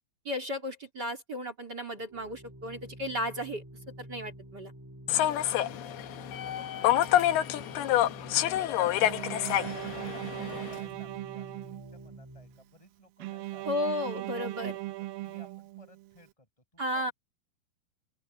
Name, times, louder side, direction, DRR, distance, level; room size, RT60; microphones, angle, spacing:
voice 1, 0.2-3.6 4.0-4.7 13.6-14.8 16.8-17.1, left 1 dB, 25° right, 3.2 m, -34 dB
Organ, 2.0-12.7, equal, 10° right, 1.1 m, -48 dB
Human voice / Subway metro underground, 5.1-10.8, left 12 dB, 70° left, 2.9 m, -28 dB
Bowed string instrument, 9.0-12.2 13.2-16.1, right 17 dB, 75° right, 2.1 m, -39 dB
voice 2, 9.1-13.7 14.5-16.5 16.7-17.1, left 1 dB, 5° left, 7.2 m, -57 dB
open air
omnidirectional pair, 5.0 m